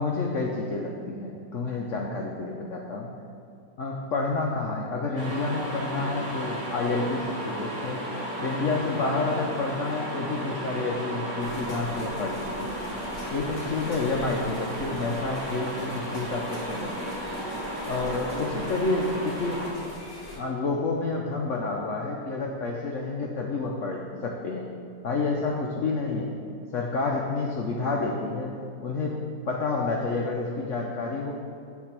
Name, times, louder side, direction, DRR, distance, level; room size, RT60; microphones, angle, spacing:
voice 1, 0.0-3.1 3.8-8.0 8.4-12.8 13.3-17.1 17.9-19.7 20.3-24.7 25.0-26.3 26.7-29.2 29.5-31.3, left 3 dB, 70° left, 0 dB, 0.7 m, -29 dB
sound 1, 5.2-19.7, equal, 25° right, 1.5 m, -34 dB
sound 2, 11.4-20.4, left 1 dB, 35° left, 1.6 m, -42 dB
9.4 x 3.5 x 5.9 m, 2.5 s
omnidirectional pair, 2.1 m